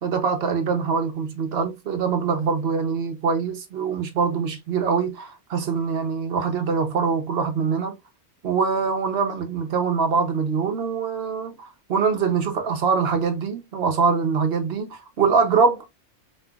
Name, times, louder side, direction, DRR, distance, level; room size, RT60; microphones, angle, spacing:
voice 1, 0.0-7.9 8.4-15.9, right 5 dB, 55° right, 0.8 m, -23 dB
4.1 x 2.5 x 2.3 m
omnidirectional pair, 1.5 m